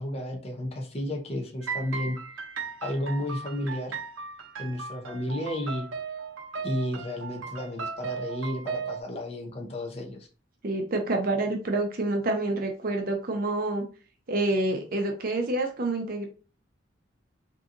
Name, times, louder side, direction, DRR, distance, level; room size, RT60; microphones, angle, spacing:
voice 1, 0.0-2.2 2.8-4.0 4.6-5.9 6.6-10.3, left 1 dB, 30° left, 0 dB, 0.6 m, -32 dB
sound 1, 1.6-9.0, right 5 dB, 90° right, 0.6 m, -37 dB
voice 2, 10.6-13.8 14.3-16.3, right 2 dB, 45° right, 3 dB, 0.6 m, -27 dB
3.8 x 2.7 x 2.5 m, 0.36 s
head